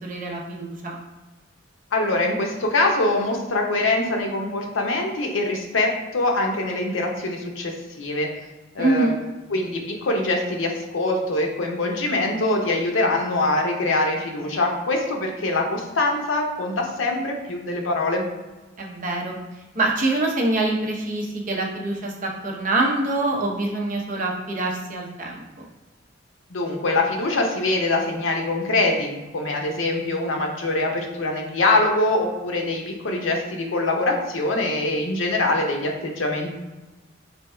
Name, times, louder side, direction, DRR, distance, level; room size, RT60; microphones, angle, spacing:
voice 1, 0.0-0.9 8.8-9.1 18.8-19.4 19.8-25.4, right 2 dB, 45° right, 0 dB, 0.7 m, -25 dB
voice 2, 1.9-8.3 8.7-9.2 9.5-18.3 26.5-36.5, left 2 dB, 75° left, 1 dB, 0.7 m, -23 dB
3.4 x 2.2 x 4.2 m, 1.2 s
head